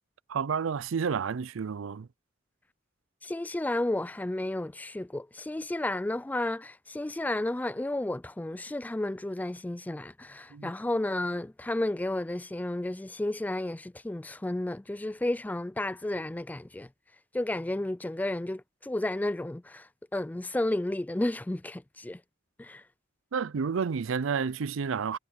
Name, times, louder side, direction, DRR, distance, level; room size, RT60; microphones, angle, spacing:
voice 1, 0.3-2.1 10.5-10.7 23.3-25.2, right 6 dB, 85° right, 0.5 m, -30 dB
voice 2, 3.2-16.9 17.3-22.2 22.6-22.8, left 1 dB, 10° left, 0.3 m, -32 dB
head